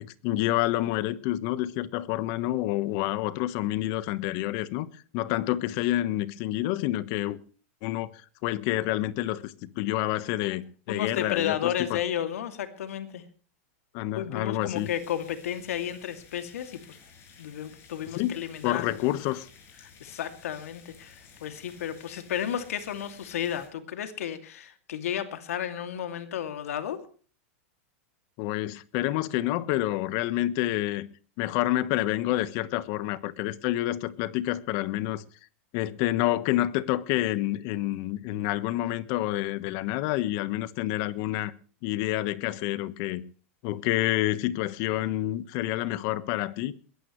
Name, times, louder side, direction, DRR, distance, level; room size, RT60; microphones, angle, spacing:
voice 1, 0.0-4.9 5.1-7.4 7.8-8.1 8.4-12.0 13.9-14.9 18.1-19.5 28.4-31.1 31.4-35.2 35.7-41.5 41.8-43.2 43.6-46.7, left 15 dB, 50° left, 1.3 m, -28 dB
voice 2, 10.9-13.2 14.1-17.0 17.4-19.0 19.8-27.0, left 10 dB, 80° left, 2.6 m, -33 dB
sound 1, 14.7-23.7, left 6 dB, 35° left, 6.9 m, -54 dB
21.5 x 16.0 x 3.2 m
supercardioid pair, 135°, 8 cm